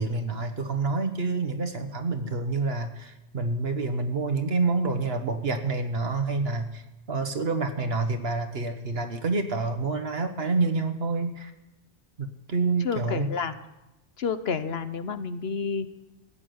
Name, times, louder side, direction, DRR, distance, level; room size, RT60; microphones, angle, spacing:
voice 1, 0.0-6.8 7.1-11.5 12.2-13.3, right 3 dB, 60° right, 8 dB, 1.5 m, -28 dB
voice 2, 12.8-13.5 14.2-15.9, left 5 dB, 65° left, 11 dB, 1.1 m, -30 dB
15.5 x 8.6 x 9.4 m, 0.97 s
omnidirectional pair, 1.2 m